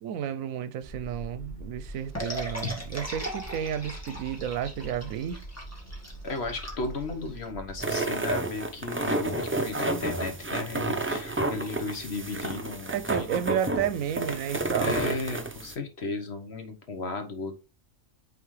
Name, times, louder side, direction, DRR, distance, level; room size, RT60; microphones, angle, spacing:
voice 1, 0.0-5.4 12.9-14.9, right 9 dB, 85° right, 1.0 m, -32 dB
sound 1, 0.8-7.8, right 1 dB, 35° left, 1.8 m, -43 dB
sound 2, 2.1-7.5, equal, 10° left, 1.7 m, -38 dB
voice 2, 6.2-13.3 13.6-13.8 14.8-17.5, left 3 dB, 55° left, 1.3 m, -35 dB
sound 3, 7.8-15.7, right 2 dB, 20° right, 0.3 m, -30 dB
9.1 x 3.7 x 3.2 m
omnidirectional pair, 1.4 m